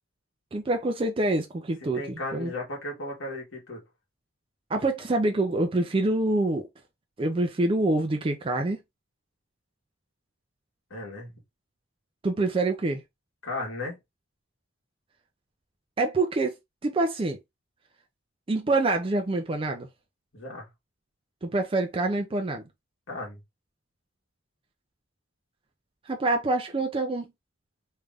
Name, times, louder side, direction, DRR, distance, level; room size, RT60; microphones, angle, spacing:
voice 1, 0.5-2.5 4.7-6.7 7.2-8.8 12.2-13.0 16.0-16.5 16.8-17.4 18.5-19.9 21.4-22.6 26.1-27.3, right 2 dB, 25° right, 0.4 m, -26 dB
voice 2, 1.9-3.8 10.9-11.3 13.4-14.0 20.3-20.7 23.1-23.4, left 2 dB, 70° left, 1.5 m, -35 dB
3.2 x 2.5 x 3.4 m
head